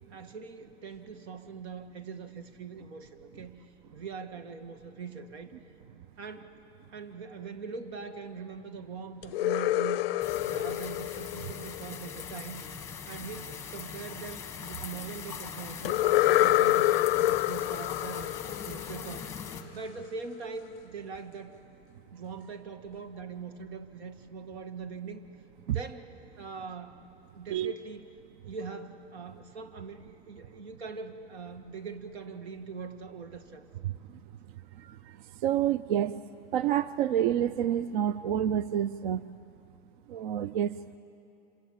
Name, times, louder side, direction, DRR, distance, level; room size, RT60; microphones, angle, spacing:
voice 1, 0.1-5.5 5.9-6.5 6.8-10.0 10.5-12.6 13.1-19.3 19.7-21.6 22.1-25.2 25.7-26.1 26.4-27.0 27.3-28.1 28.4-33.6, right 5 dB, 80° right, 8 dB, 1.8 m, -42 dB
sound 1, 9.2-12.2 15.8-19.6, left 15 dB, 65° left, 0.5 m, -27 dB
sound 2, 10.2-19.6, left 7 dB, 10° left, 1.1 m, -41 dB
voice 2, 33.8-34.2 34.5-36.2 36.5-39.2 40.1-41.0, right 10 dB, 50° right, 16 dB, 0.4 m, -29 dB
26.0 x 17.5 x 8.8 m, 2.8 s
supercardioid pair, 165°, 32 cm